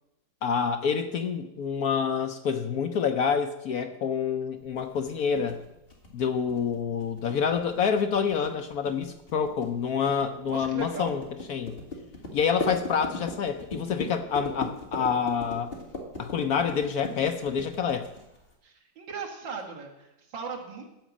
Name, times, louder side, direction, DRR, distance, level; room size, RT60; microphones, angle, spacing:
voice 1, 0.4-5.6 6.1-11.2 11.5-11.8 12.3-15.7 16.2-18.1, left 6 dB, 65° left, 8 dB, 1.0 m, -27 dB
sound 1, 4.8-18.5, left 2 dB, 30° left, 2.4 m, -38 dB
voice 2, 10.5-11.1 18.6-20.8, right 5 dB, 80° right, 1 dB, 2.4 m, -38 dB
15.0 x 5.1 x 8.4 m, 0.89 s
omnidirectional pair, 2.0 m